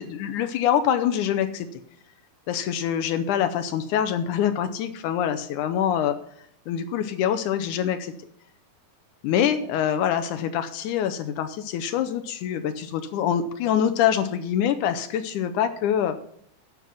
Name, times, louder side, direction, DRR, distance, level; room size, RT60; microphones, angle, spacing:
voice 1, 0.0-1.7 2.5-6.2 6.7-8.1 9.2-16.2, left 9 dB, 80° left, 8 dB, 2.1 m, -25 dB
10.5 x 6.3 x 5.7 m, 0.69 s
omnidirectional pair, 3.8 m